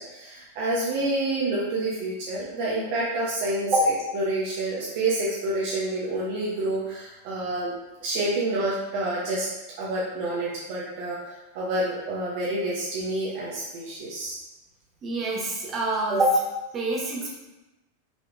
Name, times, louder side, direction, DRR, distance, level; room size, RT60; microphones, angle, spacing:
voice 1, 0.0-3.7 4.1-7.7 8.0-9.5 9.8-14.4, right 2 dB, 50° right, -5 dB, 0.8 m, -28 dB
voice 2, 15.0-16.4 16.7-17.4, right 1 dB, 25° right, -4 dB, 1.2 m, -25 dB
5.1 x 3.4 x 2.5 m, 1.0 s
figure-of-eight pair, 90°, 0 cm